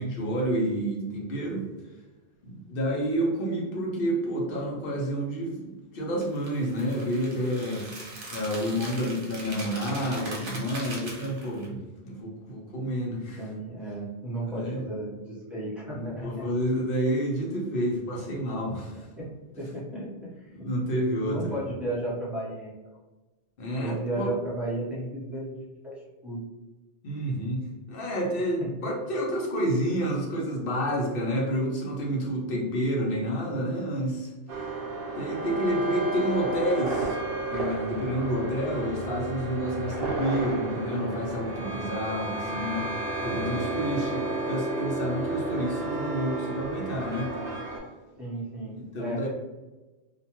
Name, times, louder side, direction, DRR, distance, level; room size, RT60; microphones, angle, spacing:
voice 1, 0.0-1.6 2.4-5.7 5.9-7.9 8.3-13.5 14.5-14.8 16.0-19.0 20.5-21.5 23.6-24.3 27.0-34.3 35.1-37.2 37.5-43.0 43.2-47.3 48.9-49.3, equal, 60° left, -2 dB, 0.8 m, -29 dB
sound 1, 6.2-11.7, right 1 dB, 80° right, 1.1 m, -40 dB
voice 2, 13.4-16.5 19.2-19.3 19.5-20.7 21.2-22.7 23.8-26.5 28.6-28.9 43.9-44.0 44.3-44.5 48.2-49.3, right 1 dB, ahead, -7 dB, 0.6 m, -34 dB
sound 2, 34.5-47.8, right 2 dB, 60° right, 0.8 m, -32 dB
2.5 x 2.2 x 2.8 m, 1.2 s
omnidirectional pair, 1.2 m